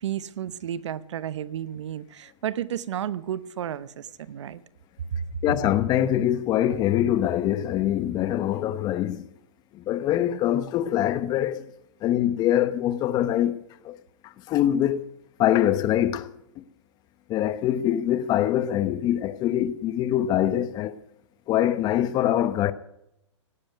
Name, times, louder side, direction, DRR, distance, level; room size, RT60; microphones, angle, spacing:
voice 1, 0.0-4.6, right 10 dB, 70° right, 1.0 m, -32 dB
voice 2, 5.4-9.2 9.7-11.6 12.0-13.5 13.8-14.0 14.5-15.1 15.4-16.3 17.3-21.0 21.5-22.7, left 11 dB, 25° left, 0.9 m, -24 dB
17.5 x 7.8 x 9.3 m
hypercardioid pair, 145°, 16 cm